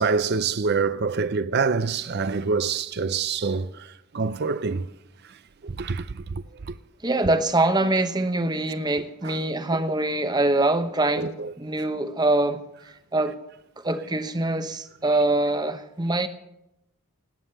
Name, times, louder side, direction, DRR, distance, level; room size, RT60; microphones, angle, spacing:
voice 1, 0.0-4.9 5.6-6.7 9.2-9.4 9.7-9.8 11.1-11.5, right 4 dB, 50° right, 0.5 m, -26 dB
voice 2, 7.0-11.3 11.6-12.6 13.1-13.3 13.8-16.3, right 2 dB, 20° right, 0.9 m, -24 dB
19.0 x 9.3 x 6.7 m
head